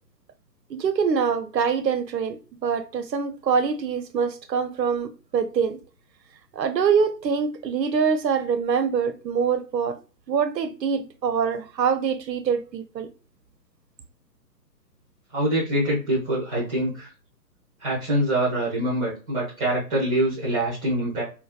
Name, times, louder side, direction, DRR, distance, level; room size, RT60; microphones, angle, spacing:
voice 1, 0.7-5.8 6.5-10.0 10.3-13.1, right 6 dB, 80° right, 0.7 m, -24 dB
voice 2, 15.3-17.1 17.8-21.2, right 1 dB, 5° right, 0.6 m, -24 dB
4.5 x 2.2 x 2.3 m
figure-of-eight pair, 140°, 50 cm